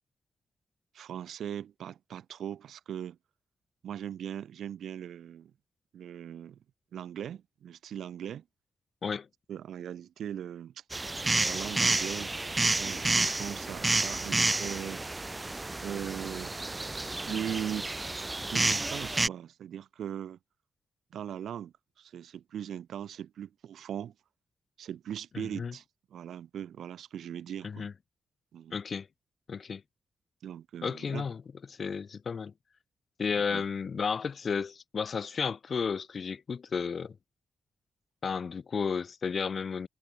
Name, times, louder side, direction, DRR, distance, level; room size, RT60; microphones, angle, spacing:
voice 1, 0.9-3.2 3.8-5.5 5.9-6.6 6.9-8.4 9.5-10.8 11.4-12.5 12.8-15.0 15.8-16.5 17.2-17.9 18.5-20.4 21.1-24.1 24.8-25.8 26.1-27.9 28.5-28.8 30.4-31.3 33.4-33.7, right 9 dB, 90° right, 1.6 m, -39 dB
sound 1, 10.9-19.3, right 2 dB, 15° right, 0.4 m, -30 dB
voice 2, 25.3-25.7 27.6-27.9 28.7-29.1 29.5-29.8 30.8-31.4 31.7-32.5 33.2-37.2 38.2-39.9, left 6 dB, 45° left, 3.3 m, -33 dB
wide cardioid pair, 135°, 0 cm